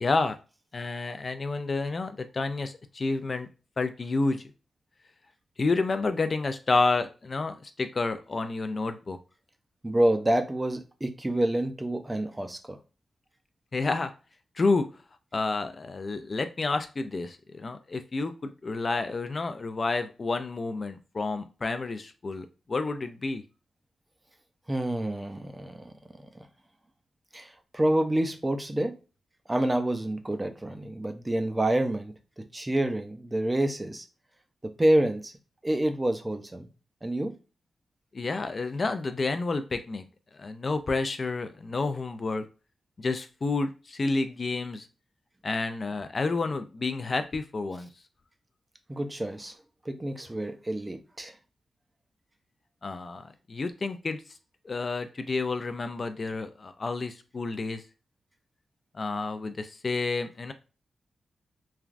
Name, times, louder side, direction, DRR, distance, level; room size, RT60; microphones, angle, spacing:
voice 1, 0.0-0.4 0.7-3.5 3.8-4.4 5.6-9.2 13.7-14.1 14.6-14.9 15.3-23.4 38.1-40.0 40.4-42.4 43.0-44.9 45.4-47.9 52.8-54.2 54.6-57.8 58.9-60.5, left 3 dB, 45° left, 0.3 m, -30 dB
voice 2, 9.8-12.8 24.7-25.9 26.3-26.4 27.3-28.9 29.5-32.1 32.5-34.0 34.8-35.3 35.6-36.7 37.0-37.3 48.9-49.6 49.9-51.3, right 1 dB, 20° right, 0.5 m, -27 dB
3.2 x 2.3 x 2.4 m
cardioid pair, 90°, 0 cm